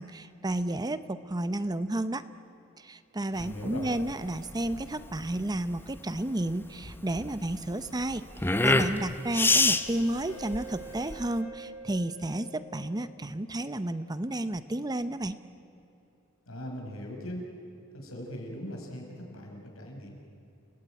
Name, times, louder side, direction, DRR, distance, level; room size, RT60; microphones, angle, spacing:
voice 1, 0.0-2.2 2.8-8.2 8.6-15.4, right 1 dB, 20° right, 12 dB, 0.7 m, -32 dB
voice 2, 3.4-3.9 16.5-17.4 17.9-20.1, equal, 80° left, 1 dB, 5.7 m, -40 dB
sound 1, 3.4-11.4, left 2 dB, 10° left, 0.9 m, -28 dB
Wind instrument woodwind instrument, 8.5-13.4, right 1 dB, 40° left, 7.6 m, -47 dB
29.5 x 18.0 x 9.0 m, 2.8 s
head